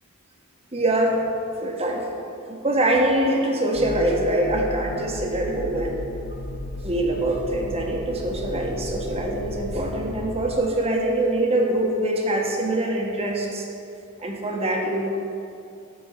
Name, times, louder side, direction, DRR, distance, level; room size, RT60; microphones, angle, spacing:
voice 1, 0.7-1.3 1.6-2.1 2.5-6.0 6.8-13.7 14.2-15.1, right 1 dB, 30° right, 0 dB, 1.3 m, -24 dB
sound 1, 3.7-10.6, left 2 dB, 60° left, 0.8 m, -34 dB
12.5 x 4.7 x 8.2 m, 2.6 s
head